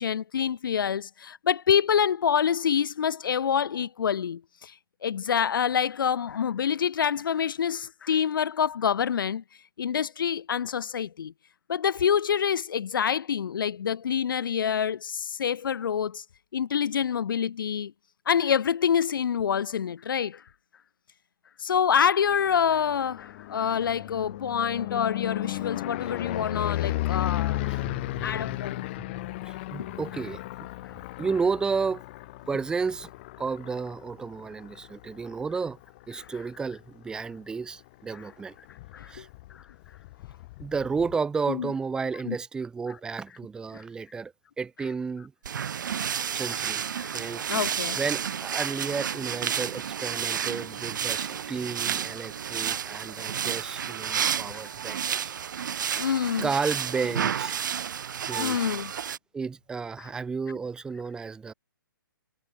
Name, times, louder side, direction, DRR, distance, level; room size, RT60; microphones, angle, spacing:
voice 1, 0.0-4.7 5.0-9.4 9.8-11.3 11.7-16.2 16.5-17.9 18.3-20.4 21.6-28.0 28.2-28.8 29.8-29.9 36.2-36.3 38.1-38.3 38.9-39.3 39.5-39.6 41.5-41.7 42.3-42.4 43.7-43.8 46.2-46.4 47.0-48.0 51.1-51.2 54.2-54.3 54.5-54.7 55.6-56.5 58.4-58.9 60.0-60.1 60.5-60.6, left 8 dB, 65° left, 0.5 m, -27 dB
sound 1, 22.5-36.5 37.0-37.4 37.7-37.8 38.1-38.2 38.3-41.1, left 19 dB, 30° left, 2.4 m, -35 dB
voice 2, 27.4-28.2 28.6-28.7 29.5-30.7 31.2-32.0 32.5-33.1 33.4-35.8 36.1-38.5 39.1-39.3 40.6-45.3 46.3-46.8 47.1-55.3 55.7-55.9 56.4-57.6 58.3-58.7 59.3-61.5, right 5 dB, 5° right, 2.0 m, -32 dB
sound 2, 45.4-59.2, right 8 dB, 60° right, 1.0 m, -31 dB
hypercardioid pair, 155°, 12 cm